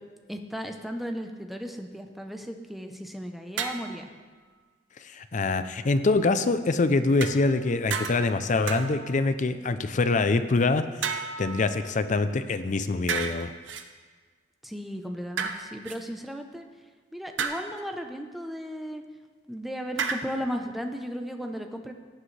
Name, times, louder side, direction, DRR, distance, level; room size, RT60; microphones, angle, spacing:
voice 1, 0.3-4.1 14.6-16.7 17.1-19.0 19.5-21.9, equal, ahead, 4 dB, 0.7 m, -35 dB
sound 1, 3.6-4.0 7.2-7.6 7.9-8.3 8.7-9.2 11.0-12.1 13.1-13.8 15.4-16.0 17.4-17.8 20.0-20.2, right 5 dB, 75° right, 0.7 m, -32 dB
voice 2, 5.0-13.5, left 3 dB, 40° left, 11 dB, 0.5 m, -25 dB
16.5 x 7.7 x 3.3 m, 1.5 s
head